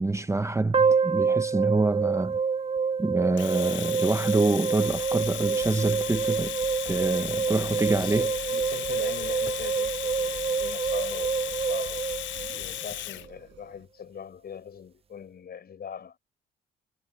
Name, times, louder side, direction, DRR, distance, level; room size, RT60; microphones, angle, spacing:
voice 1, 0.0-2.4 3.0-6.6 6.8-8.3, right 2 dB, 15° right, 0.9 m, -26 dB
sound 1, 0.7-13.0, right 5 dB, 30° right, 0.5 m, -27 dB
Domestic sounds home sounds, 3.4-13.3, left 14 dB, 70° left, 0.5 m, -36 dB
sound 2, 4.9-13.9, right 10 dB, 70° right, 4.7 m, -47 dB
voice 2, 7.6-12.0 12.5-16.2, left 7 dB, 50° left, 6.9 m, -42 dB
cardioid pair, 90°, 20 cm